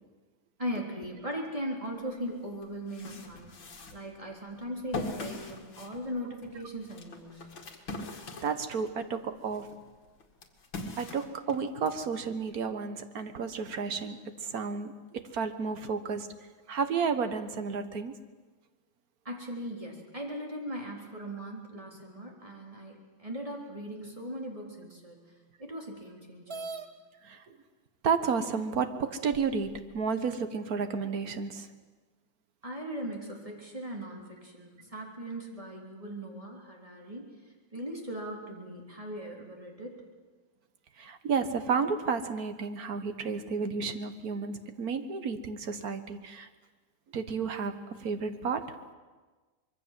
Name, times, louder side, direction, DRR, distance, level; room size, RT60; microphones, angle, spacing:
voice 1, 0.6-3.6 3.9-7.5 19.2-25.2 25.6-26.7 32.6-37.2 37.7-40.0, equal, 15° right, -1 dB, 3.8 m, -39 dB
sound 1, 2.1-2.2 2.6-9.0 9.4-12.0, left 3 dB, 80° left, 3.0 m, -42 dB
voice 2, 8.4-9.8 11.0-16.3 16.7-18.2 27.2-27.4 28.0-31.7 41.0-46.5 47.1-48.8, right 5 dB, 50° right, 9 dB, 1.6 m, -32 dB
sound 2, 26.5-26.9 27.9-28.0 28.6-28.7 29.3-30.0, right 3 dB, 35° right, 1.4 m, -41 dB
25.0 x 22.0 x 7.6 m, 1.3 s
omnidirectional pair, 2.1 m